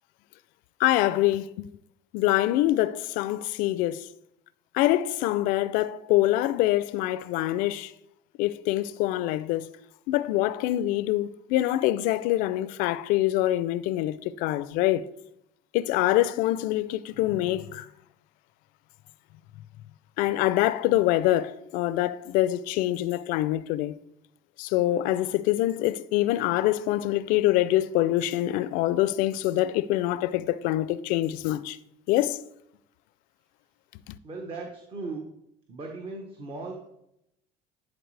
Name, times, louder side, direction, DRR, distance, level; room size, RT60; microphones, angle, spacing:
voice 1, 0.8-1.7 2.1-4.1 4.7-7.9 8.4-9.7 10.1-15.1 15.7-17.9 20.2-24.0 24.6-31.8 32.1-32.4 34.1-34.2, left 15 dB, 70° left, 0.4 m, -25 dB
voice 2, 34.2-35.2 35.7-36.8, right 3 dB, 40° right, 1.2 m, -37 dB
10.5 x 4.2 x 3.3 m
supercardioid pair, 90°, 15 cm